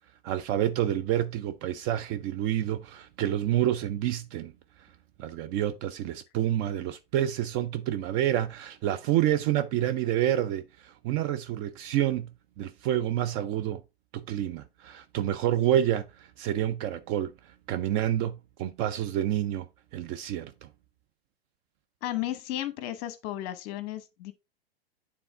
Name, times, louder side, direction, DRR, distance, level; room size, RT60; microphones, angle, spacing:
voice 1, 0.2-4.5 5.2-12.3 12.6-13.8 14.1-17.3 17.7-19.6 19.9-20.5, right 11 dB, 25° right, 0.3 m, -28 dB
voice 2, 22.0-24.3, left 13 dB, 40° left, 1.0 m, -34 dB
9.1 x 3.6 x 3.4 m
figure-of-eight pair, 100°, 31 cm